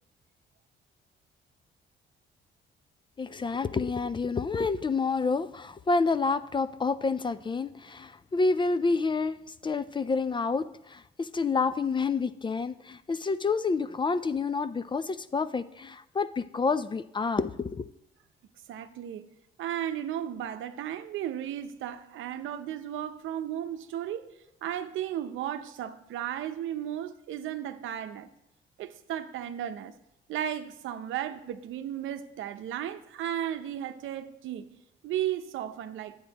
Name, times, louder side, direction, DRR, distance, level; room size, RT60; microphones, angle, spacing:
voice 1, 3.2-9.4 9.6-17.9, left 4 dB, 25° left, 0.4 m, -28 dB
voice 2, 18.7-19.3 19.6-24.3 24.6-28.3 28.8-29.9 30.3-34.7 35.0-36.2, right 10 dB, 80° right, 0.7 m, -34 dB
11.0 x 8.6 x 4.0 m
cardioid pair, 90°, 20 cm